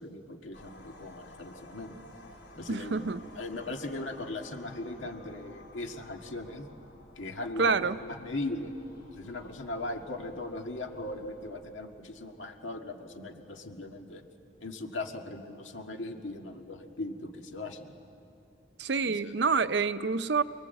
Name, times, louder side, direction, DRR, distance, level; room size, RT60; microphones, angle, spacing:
voice 1, 0.0-2.0 2.6-6.7 7.2-8.7 9.2-14.2 14.6-17.9 19.0-19.3, left 2 dB, 85° left, 4 dB, 1.9 m, -39 dB
sound 1, 0.5-11.6, left 1 dB, 65° left, 2.9 m, -54 dB
voice 2, 2.7-3.3 7.6-8.0 18.8-20.4, right 4 dB, 65° right, 13 dB, 0.6 m, -27 dB
28.0 x 20.0 x 8.1 m, 2.7 s
head